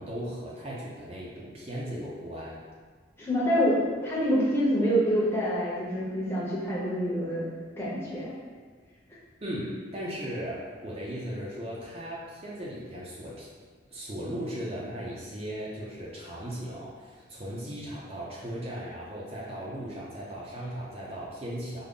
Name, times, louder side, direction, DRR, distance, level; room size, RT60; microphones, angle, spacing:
voice 1, 0.0-2.6 9.4-13.5 13.9-21.8, equal, 30° right, -5 dB, 0.5 m, -37 dB
voice 2, 3.2-7.4 7.8-8.3, equal, 10° left, -8 dB, 0.7 m, -26 dB
3.6 x 2.0 x 3.6 m, 1.5 s
head